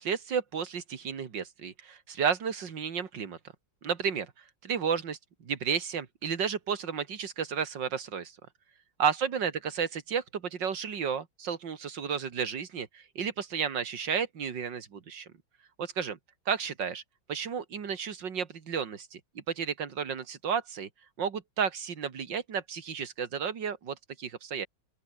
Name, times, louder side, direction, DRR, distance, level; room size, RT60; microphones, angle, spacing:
voice 1, 0.0-3.4 3.8-4.3 4.6-8.4 9.0-15.3 15.8-16.2 16.5-17.0 17.3-20.9 21.2-24.7, right 7 dB, 60° right, 2.6 m, -32 dB
open air
omnidirectional pair, 2.2 m